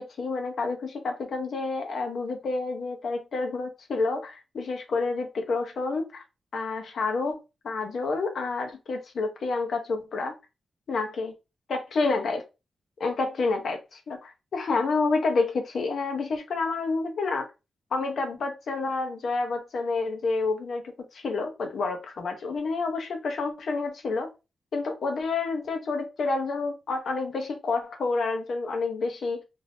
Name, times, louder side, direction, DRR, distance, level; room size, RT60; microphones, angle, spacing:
voice 1, 0.0-6.2 6.5-10.3 10.9-11.4 11.7-12.4 13.0-17.5 17.9-24.3 24.7-29.4, left 3 dB, 65° left, 0.7 m, -29 dB
3.4 x 2.6 x 2.5 m
wide cardioid pair, 155°, 0 cm